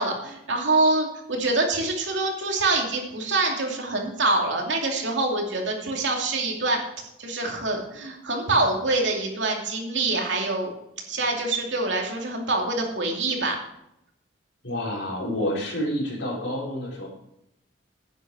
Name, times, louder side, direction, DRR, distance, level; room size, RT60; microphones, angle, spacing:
voice 1, 0.0-6.8 7.2-10.7 11.1-13.6, right 2 dB, 80° right, 1 dB, 2.6 m, -25 dB
voice 2, 14.6-17.1, equal, 75° left, -2 dB, 4.4 m, -28 dB
11.0 x 9.2 x 4.8 m, 0.81 s
head